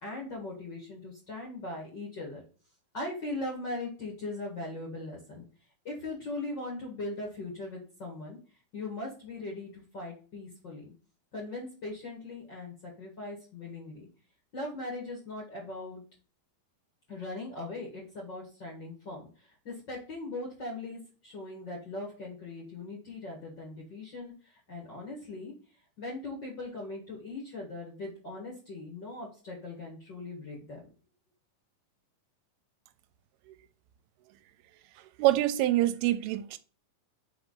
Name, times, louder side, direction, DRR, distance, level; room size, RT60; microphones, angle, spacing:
voice 1, 0.0-2.4 2.9-5.4 5.8-8.4 8.7-10.9 11.3-14.1 14.5-16.0 17.1-25.5 26.0-30.9, left 2 dB, 45° left, 1.6 m, -40 dB
voice 2, 35.2-36.6, right 15 dB, 85° right, 2.5 m, -25 dB
5.2 x 4.7 x 3.9 m
omnidirectional pair, 4.4 m